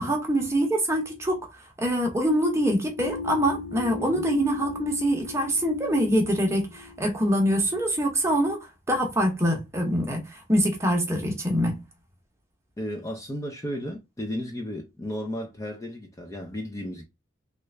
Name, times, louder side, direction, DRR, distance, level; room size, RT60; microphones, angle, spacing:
voice 1, 0.0-1.4 1.8-8.6 8.9-11.8, equal, 15° right, 0.8 m, -24 dB
sound 1, 3.0-8.0, left 4 dB, 60° left, 0.6 m, -37 dB
voice 2, 12.8-17.0, equal, 15° left, 0.5 m, -34 dB
3.2 x 2.4 x 3.2 m
head